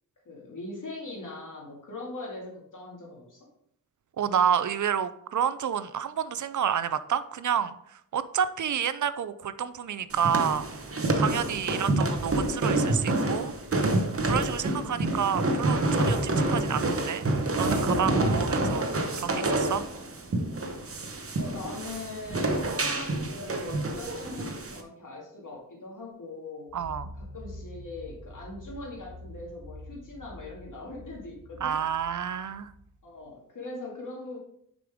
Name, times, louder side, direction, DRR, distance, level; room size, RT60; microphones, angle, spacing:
voice 1, 0.3-3.5 14.6-15.3 18.4-19.3 21.3-26.7 27.2-31.8 33.0-34.4, left 2 dB, 65° left, -3 dB, 2.3 m, -41 dB
voice 2, 4.2-7.7 8.1-10.7 11.2-13.5 14.2-17.2 17.6-18.8 19.2-19.8 26.7-27.1 31.6-32.7, right 8 dB, 60° right, 14 dB, 0.5 m, -29 dB
sound 1, 10.1-24.8, right 2 dB, 40° right, 0.9 m, -27 dB
sound 2, 26.7-33.2, left 1 dB, 20° left, 2.3 m, -46 dB
6.7 x 5.1 x 3.5 m, 0.71 s
wide cardioid pair, 105°, 34 cm